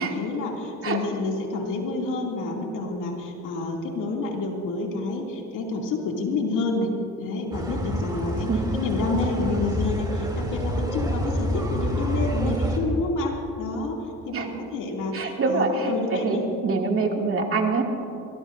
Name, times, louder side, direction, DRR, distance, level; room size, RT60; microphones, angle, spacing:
voice 1, 0.0-6.9 7.2-14.0 14.3-16.4, left 3 dB, 85° left, 0 dB, 2.6 m, -28 dB
sound 1, 7.5-12.8, equal, 15° right, 2.8 m, -27 dB
voice 2, 15.1-17.8, right 4 dB, 45° right, 1 dB, 2.3 m, -25 dB
23.5 x 19.5 x 2.6 m, 2.8 s
cardioid pair, 90°, 30 cm